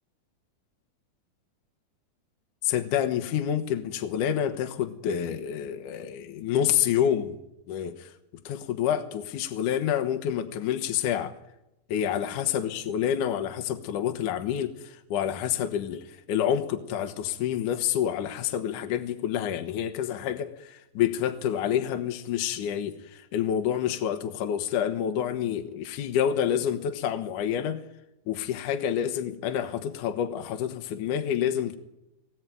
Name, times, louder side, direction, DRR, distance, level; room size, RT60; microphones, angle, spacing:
voice 1, 2.6-7.4 7.7-8.1 8.4-11.3 11.9-27.8 28.3-31.7, left 9 dB, 65° left, 6 dB, 2.6 m, -28 dB
24.0 x 20.5 x 9.4 m, 0.92 s
omnidirectional pair, 4.3 m